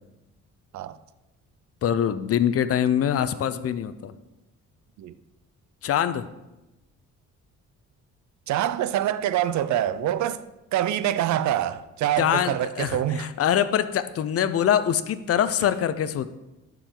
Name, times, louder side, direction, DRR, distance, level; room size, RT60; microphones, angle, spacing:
voice 1, 1.8-4.1 5.8-6.3 12.2-16.3, left 9 dB, 50° left, 0.6 m, -24 dB
voice 2, 8.5-10.4 10.7-13.3, right 11 dB, 70° right, 0.5 m, -25 dB
11.5 x 4.7 x 3.8 m
cardioid pair, 90°, 30 cm